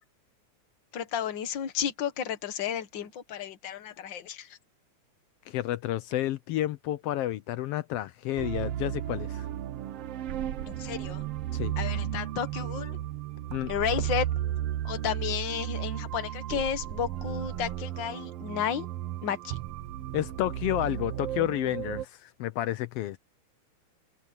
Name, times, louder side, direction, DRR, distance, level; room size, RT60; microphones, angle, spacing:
voice 1, 0.9-4.6 10.7-11.2 11.8-13.0 13.7-14.3 14.8-18.9 19.2-19.6, left 8 dB, 50° left, 1.5 m, -32 dB
voice 2, 5.5-9.5 11.5-11.7 13.5-13.7 20.1-23.2, left 14 dB, 85° left, 1.3 m, -30 dB
sound 1, 8.4-22.0, right 12 dB, 70° right, 1.5 m, -34 dB
open air
omnidirectional pair, 3.5 m